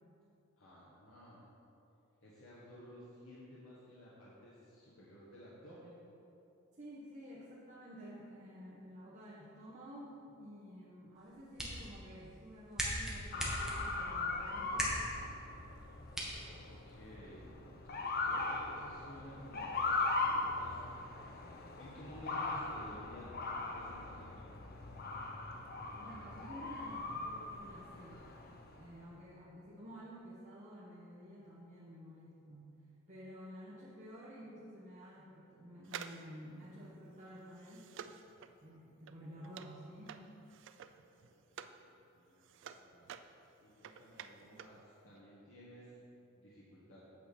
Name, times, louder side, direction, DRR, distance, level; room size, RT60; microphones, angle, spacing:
voice 1, 0.6-1.4 2.2-6.0 16.4-17.5 17.9-21.1 21.8-23.3 23.7-24.7 41.1-43.1 43.6-46.0 46.3-47.0, equal, 70° left, -7 dB, 1.3 m, -55 dB
voice 2, 6.7-15.1 25.9-28.3 28.8-32.7 33.1-37.9 38.6-40.2, equal, 40° right, -8 dB, 1.1 m, -51 dB
sound 1, 11.2-17.2, right 1 dB, 5° right, 1.3 m, -42 dB
Motor vehicle (road) / Siren, 13.3-28.9, left 3 dB, 50° left, 0.7 m, -40 dB
sound 2, 35.8-41.8 42.2-44.8 45.1-45.2, right 8 dB, 65° right, 0.4 m, -51 dB
8.3 x 7.1 x 4.3 m, 2.8 s
head